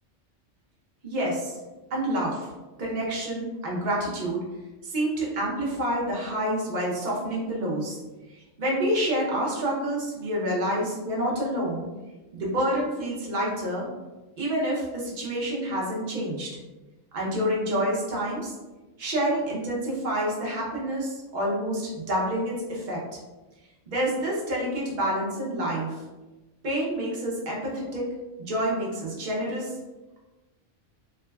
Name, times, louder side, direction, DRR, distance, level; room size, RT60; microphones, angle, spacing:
voice 1, 1.0-1.5 1.9-2.5 2.8-4.4 4.8-8.0 8.3-11.9 12.3-13.9 14.4-16.6 17.1-18.5 19.0-23.0 23.9-26.0 26.6-28.1 28.5-29.7, right 1 dB, 45° right, -4 dB, 0.8 m, -28 dB
3.3 x 2.0 x 2.2 m, 1.1 s
omnidirectional pair, 1.2 m